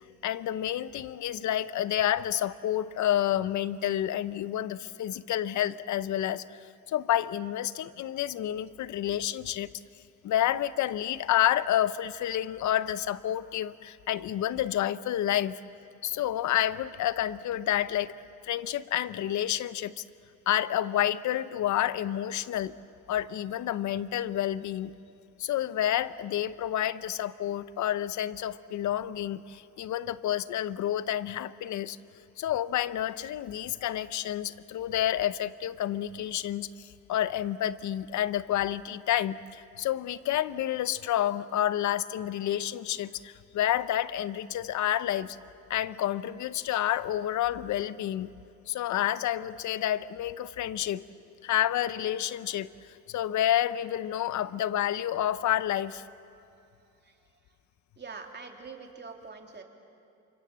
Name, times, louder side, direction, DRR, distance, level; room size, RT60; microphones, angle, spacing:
voice 1, 0.2-6.6 6.9-9.7 10.2-15.6 16.0-18.1 18.4-20.0 20.5-22.8 23.1-24.9 25.4-32.0 32.4-45.4 45.7-48.3 48.7-51.1 51.4-52.7 53.1-56.0, left 12 dB, 70° left, 16 dB, 0.8 m, -29 dB
voice 2, 58.0-59.6, right 4 dB, 35° right, 3 dB, 3.1 m, -44 dB
28.0 x 25.0 x 7.5 m, 2.5 s
cardioid pair, 90°, 30 cm